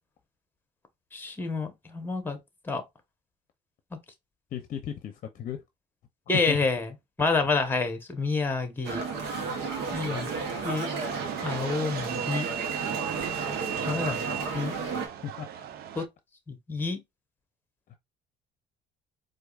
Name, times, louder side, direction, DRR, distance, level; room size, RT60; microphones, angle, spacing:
voice 1, 1.1-2.4 2.6-2.8 6.3-9.0 9.9-10.3 10.6-10.9 11.4-12.5 13.9-14.2 14.5-14.7 16.0-16.1 16.5-17.0, left 3 dB, 10° left, 1.0 m, -28 dB
voice 2, 4.5-5.6 6.5-6.6 15.2-15.7, left 9 dB, 50° left, 0.6 m, -36 dB
sound 1, 8.8-15.1, right 4 dB, 85° right, 1.0 m, -32 dB
sound 2, 11.0-16.1, right 11 dB, 65° right, 0.5 m, -37 dB
4.6 x 2.5 x 2.4 m
cardioid pair, 110°, 17 cm